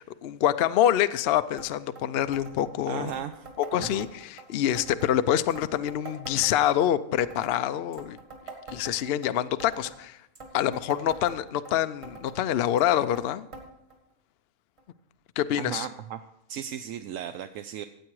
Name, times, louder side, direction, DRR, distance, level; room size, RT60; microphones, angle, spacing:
voice 1, 0.0-3.1 3.6-8.2 8.7-10.2 10.5-13.5 15.4-15.9, left 11 dB, 65° left, 12 dB, 0.6 m, -26 dB
sound 1, 1.6-1.7 2.0-2.1 2.3-2.7 3.1-4.4 4.8-5.1 5.5-6.9 7.2-7.6 7.9-9.3 9.6-10.0 10.4-11.7 12.0-12.4 12.8-13.3 13.5-13.7 13.9-14.0 14.8-14.9 15.7-15.8, right 4 dB, 45° right, 2.5 m, -44 dB
voice 2, 2.9-3.5 3.8-4.1 15.6-16.2 16.5-17.8, right 10 dB, 70° right, 8 dB, 0.9 m, -36 dB
15.5 x 8.7 x 4.7 m, 0.80 s
omnidirectional pair, 1.6 m